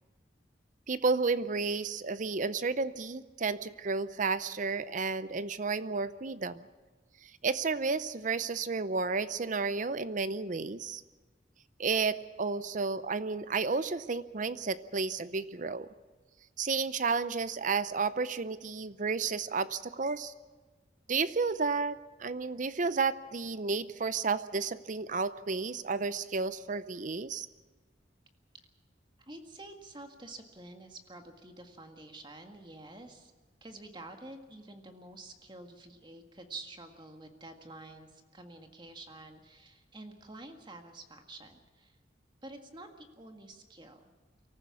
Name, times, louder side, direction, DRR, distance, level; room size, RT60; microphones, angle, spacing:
voice 1, 0.9-6.7 7.2-11.0 11.8-15.9 16.6-20.3 21.1-27.5, right 4 dB, 40° right, 14 dB, 0.6 m, -32 dB
voice 2, 29.3-33.3 33.6-42.0 42.4-44.0, right 2 dB, 25° right, 5 dB, 1.8 m, -49 dB
24.0 x 14.5 x 8.5 m, 1.3 s
head